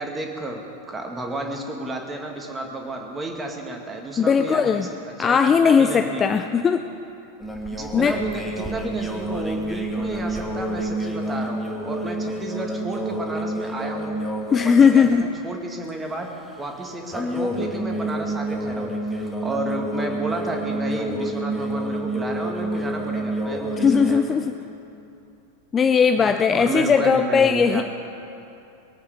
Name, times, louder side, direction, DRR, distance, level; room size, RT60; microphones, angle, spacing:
voice 1, 0.0-4.9 5.2-6.4 7.8-14.2 14.5-16.3 16.6-24.3 26.2-27.8, right 2 dB, 15° right, 2 dB, 2.1 m, -32 dB
voice 2, 4.2-4.9 5.2-6.9 7.9-8.2 14.5-15.3 23.8-24.5 25.7-27.8, left 6 dB, 20° left, 8 dB, 0.5 m, -18 dB
sound 1, 7.4-14.5 14.8-15.2 17.1-24.2, right 1 dB, 5° left, 1.8 m, -28 dB
22.0 x 8.7 x 6.8 m, 2.7 s
figure-of-eight pair, 90°, 0 cm